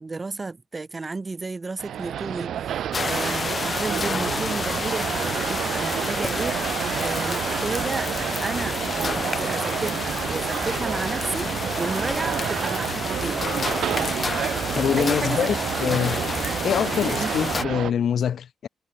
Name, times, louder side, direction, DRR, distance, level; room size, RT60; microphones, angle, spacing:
voice 1, 0.0-8.1 8.4-11.5 11.8-13.5 15.0-16.0 17.2-17.3, right 3 dB, 25° right, 2.1 m, -32 dB
sound 1, 1.8-17.9, right 10 dB, 75° right, 0.8 m, -29 dB
sound 2, 2.9-17.6, left 4 dB, 35° left, 0.9 m, -30 dB
sound 3, 10.8-17.2, left 2 dB, 15° left, 3.8 m, -44 dB
voice 2, 14.7-16.3 16.6-18.7, left 8 dB, 60° left, 0.6 m, -25 dB
cardioid pair, 125°, 0 cm